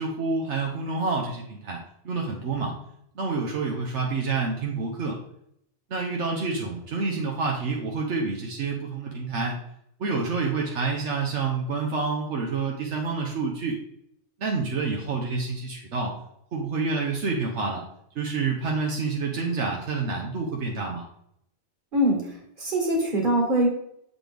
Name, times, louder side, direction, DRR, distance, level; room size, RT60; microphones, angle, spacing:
voice 1, 0.0-2.8 3.1-5.2 5.9-9.6 10.0-13.8 14.4-16.2 16.5-17.8 18.1-21.1, right 4 dB, 80° right, 0 dB, 1.2 m, -28 dB
voice 2, 21.9-23.7, right 1 dB, 45° right, 0 dB, 1.7 m, -23 dB
7.6 x 4.1 x 3.4 m, 0.73 s
omnidirectional pair, 1.2 m